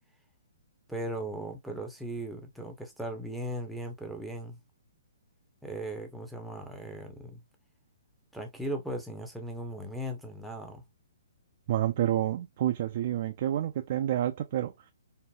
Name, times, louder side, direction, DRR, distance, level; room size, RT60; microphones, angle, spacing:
voice 1, 0.9-4.6 5.6-7.4 8.3-10.8, right 1 dB, ahead, 0.7 m, -38 dB
voice 2, 11.7-14.7, right 12 dB, 50° right, 0.3 m, -29 dB
3.7 x 2.0 x 2.3 m
hypercardioid pair, 130°, 0 cm